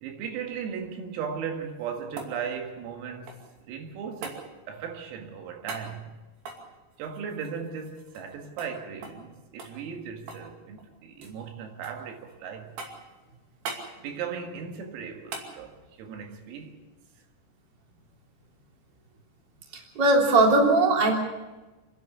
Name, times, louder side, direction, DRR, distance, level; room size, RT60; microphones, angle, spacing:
voice 1, 0.0-6.2 7.0-12.8 14.0-16.8, right 7 dB, 90° right, 4.6 m, -37 dB
sound 1, 1.5-3.6 4.2-4.4 5.7-5.9 6.4-8.3 8.6-8.7 9.0-9.3 9.6-10.5 10.8-11.4 11.8-12.3 12.8-13.1 13.6-13.9 15.3-15.5 17.9-18.0, right 4 dB, 55° right, 4.0 m, -41 dB
voice 2, 19.9-21.1, right 2 dB, 25° right, 3.1 m, -19 dB
29.0 x 11.0 x 8.3 m
omnidirectional pair, 5.9 m